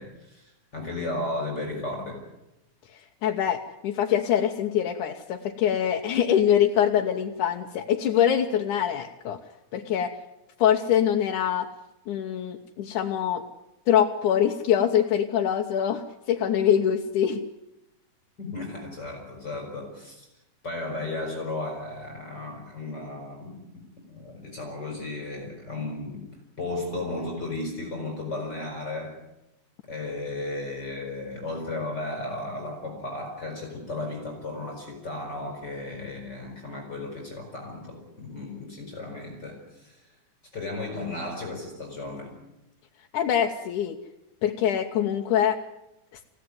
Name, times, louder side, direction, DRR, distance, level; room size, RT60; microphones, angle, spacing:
voice 1, 0.0-2.2 18.4-20.3 20.6-26.2 26.6-29.2 29.9-40.1 40.5-42.3, left 2 dB, 35° left, 1 dB, 5.3 m, -34 dB
voice 2, 3.2-9.4 9.7-10.1 10.6-11.7 12.1-13.4 13.9-17.4 43.1-44.0 44.4-45.6, left 9 dB, 85° left, 1 dB, 2.6 m, -24 dB
28.0 x 16.5 x 9.7 m, 0.94 s
omnidirectional pair, 3.5 m